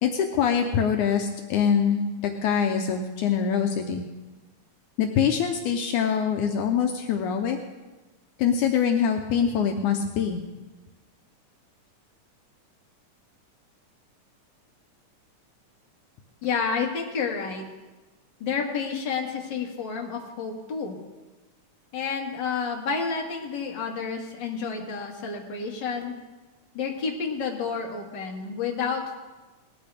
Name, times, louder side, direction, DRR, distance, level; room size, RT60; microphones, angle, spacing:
voice 1, 0.0-4.0 5.0-7.6 8.4-10.4, left 7 dB, 75° left, 4 dB, 2.2 m, -24 dB
voice 2, 16.4-17.7 18.4-21.0 21.9-26.2 26.7-29.2, left 5 dB, 40° left, -1 dB, 2.3 m, -30 dB
19.5 x 14.5 x 3.5 m, 1.2 s
omnidirectional pair, 3.7 m